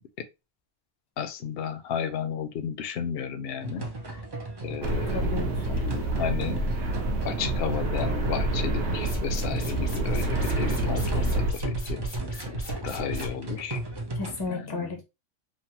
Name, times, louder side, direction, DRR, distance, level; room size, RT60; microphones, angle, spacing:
voice 1, 1.2-3.9 4.6-6.7 7.2-12.0 12.8-13.8 14.5-14.9, left 7 dB, 65° left, 0.7 m, -33 dB
sound 1, 3.6-14.5, right 1 dB, 40° right, 0.3 m, -36 dB
sound 2, 4.8-11.5, right 1 dB, 70° right, 0.9 m, -28 dB
voice 2, 5.1-5.8 14.1-15.0, left 4 dB, 30° left, 0.5 m, -34 dB
sound 3, 8.9-13.3, right 2 dB, 85° left, 1.5 m, -35 dB
3.2 x 2.1 x 2.8 m
omnidirectional pair, 1.2 m